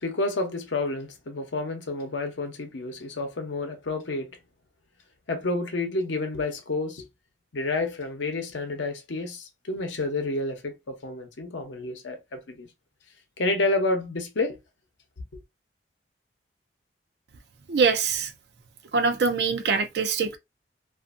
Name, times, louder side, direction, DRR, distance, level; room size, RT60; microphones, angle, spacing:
voice 1, 0.0-4.4 5.3-7.1 7.5-12.7 13.4-14.6, left 2 dB, 80° left, 0.7 m, -29 dB
voice 2, 17.7-18.3 18.9-20.4, right 5 dB, 60° right, 0.5 m, -23 dB
2.5 x 2.5 x 2.4 m
head